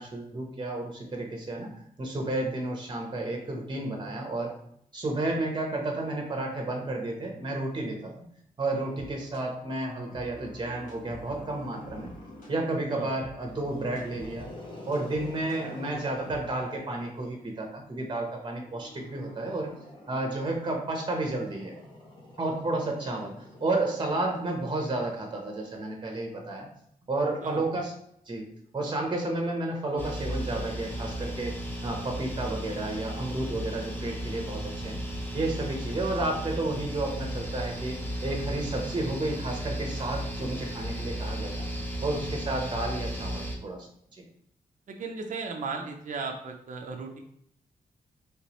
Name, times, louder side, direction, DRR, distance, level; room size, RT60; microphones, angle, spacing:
voice 1, 0.0-4.5 4.9-8.2 8.6-12.1 12.5-14.5 14.9-19.7 20.1-21.7 22.4-23.3 23.6-26.7 27.1-27.9 28.3-28.4 28.7-35.0 35.3-41.6 42.0-43.8, right 2 dB, 30° right, 1 dB, 0.8 m, -31 dB
sound 1, 8.7-16.5, left 1 dB, 60° left, 1.3 m, -48 dB
Growling, 11.1-12.8 13.4-17.6 18.5-25.1, left 1 dB, 30° left, 1.1 m, -48 dB
sound 2, 30.0-43.6, equal, 15° left, 0.7 m, -35 dB
voice 2, 44.9-47.2, right 4 dB, 55° right, 2 dB, 0.5 m, -36 dB
3.2 x 3.1 x 3.0 m, 0.70 s
wide cardioid pair, 105°, 15 cm